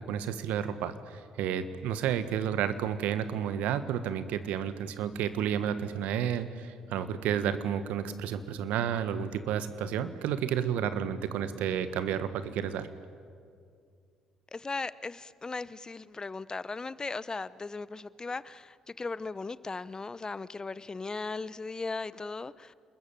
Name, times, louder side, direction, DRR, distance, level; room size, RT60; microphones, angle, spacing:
voice 1, 0.0-12.9, right 9 dB, 70° right, 12 dB, 1.4 m, -31 dB
voice 2, 14.5-22.7, left 3 dB, 30° left, 18 dB, 0.8 m, -37 dB
28.5 x 21.0 x 9.0 m, 2.3 s
hypercardioid pair, 45°, 3 cm